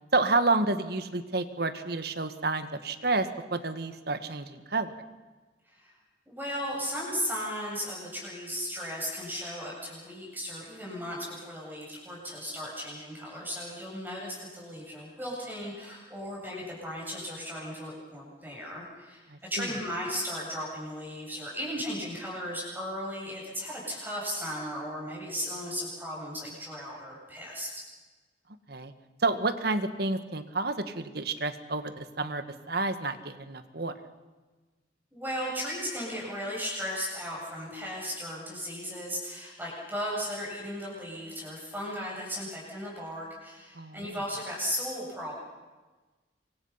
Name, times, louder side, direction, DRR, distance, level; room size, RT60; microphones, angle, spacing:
voice 1, 0.1-4.9 19.3-19.7 28.7-28.9 29.2-33.9 43.7-44.1, right 3 dB, 60° right, 10 dB, 1.6 m, -30 dB
voice 2, 6.3-27.8 35.1-45.4, equal, 10° right, -4 dB, 8.0 m, -36 dB
26.5 x 24.5 x 5.8 m, 1.3 s
head